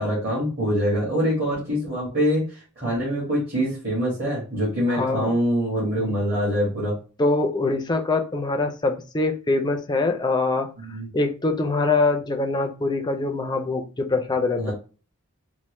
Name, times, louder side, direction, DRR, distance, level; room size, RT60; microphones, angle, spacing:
voice 1, 0.0-6.9 10.8-11.1 14.6-14.7, equal, 45° right, -8 dB, 1.8 m, -24 dB
voice 2, 4.9-5.3 6.0-6.2 7.2-10.7 11.1-14.7, left 3 dB, 20° left, 5 dB, 0.4 m, -24 dB
4.2 x 2.1 x 3.0 m, 0.35 s
head